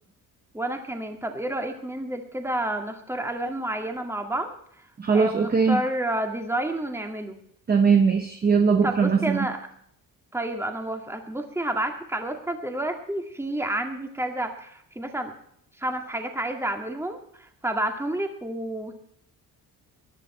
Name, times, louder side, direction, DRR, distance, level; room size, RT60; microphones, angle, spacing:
voice 1, 0.5-4.5 5.1-7.4 8.8-9.6 10.3-15.3 15.8-18.9, right 1 dB, 5° right, 4 dB, 2.1 m, -30 dB
voice 2, 5.0-5.8 7.7-9.5, right 5 dB, 25° right, 6 dB, 1.0 m, -20 dB
22.0 x 11.0 x 4.4 m, 0.68 s
cardioid pair, 155°, 36 cm